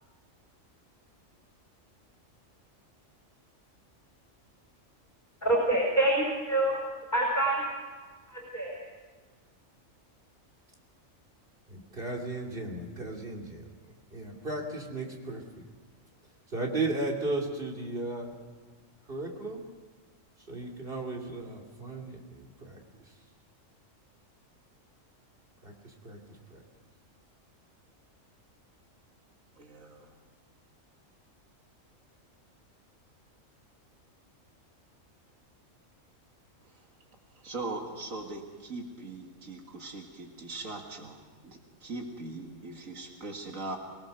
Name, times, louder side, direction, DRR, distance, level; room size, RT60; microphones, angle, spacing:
voice 1, 5.4-6.8 7.1-7.6 8.3-8.8, right 1 dB, 35° left, -2 dB, 5.3 m, -26 dB
voice 2, 11.7-13.6 14.1-15.4 16.5-18.4 19.1-19.6 20.4-23.1 25.6-26.2 26.5-26.6, right 2 dB, 45° right, 0 dB, 3.0 m, -35 dB
voice 3, 29.6-30.1 37.4-43.8, right 2 dB, 85° right, 2 dB, 2.4 m, -40 dB
24.0 x 19.0 x 6.5 m, 1.4 s
omnidirectional pair, 1.4 m